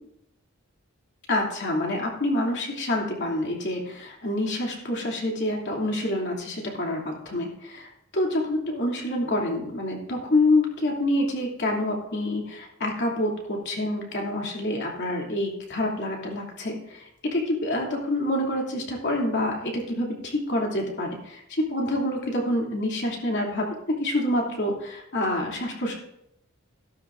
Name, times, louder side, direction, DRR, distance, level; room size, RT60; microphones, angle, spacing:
voice 1, 1.3-25.9, left 1 dB, 55° left, -1 dB, 2.8 m, -27 dB
15.0 x 12.0 x 2.6 m, 0.80 s
head